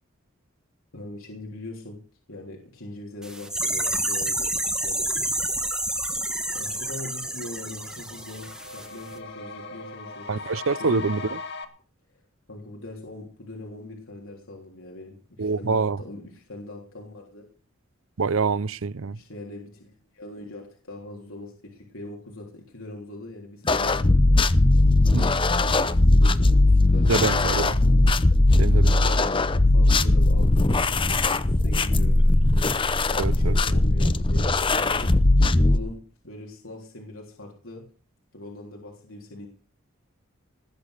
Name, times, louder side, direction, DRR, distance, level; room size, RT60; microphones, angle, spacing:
voice 1, 0.9-2.0 2.3-4.5 4.8-5.1 6.5-10.4 10.8-11.0 12.5-17.5 19.1-24.2 25.4-27.6 28.6-32.2 33.1-34.5 34.9-35.2 35.5-36.0 36.2-37.9 38.3-39.5, left 2 dB, 70° left, 3.5 m, -41 dB
sound 1, 3.2-8.9 9.1-9.2, right 1 dB, 5° right, 1.5 m, -29 dB
sound 2, 5.9-6.0 6.3-11.6, left 3 dB, 55° left, 2.1 m, -40 dB
voice 2, 10.3-11.4 15.4-16.0 18.2-19.2 25.1-25.3 27.1-27.8 28.6-29.0 33.2-33.6, right 4 dB, 75° right, 0.6 m, -25 dB
sound 3, 23.7-35.8, left 2 dB, 25° left, 0.7 m, -19 dB
19.5 x 8.6 x 6.5 m
head